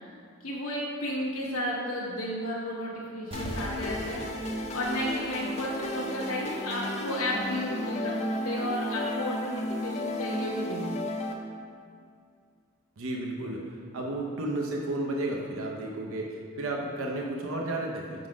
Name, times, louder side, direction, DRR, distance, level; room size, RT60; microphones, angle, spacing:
voice 1, 0.4-11.1, equal, 85° left, -5 dB, 0.8 m, -33 dB
sound 1, 3.3-11.3, left 1 dB, 30° left, 0.4 m, -33 dB
sound 2, 3.3-5.9 6.3-6.4, right 1 dB, 25° right, 0.6 m, -41 dB
voice 2, 13.0-18.3, right 2 dB, 80° right, 0 dB, 0.7 m, -33 dB
6.1 x 3.9 x 5.0 m, 2.2 s
head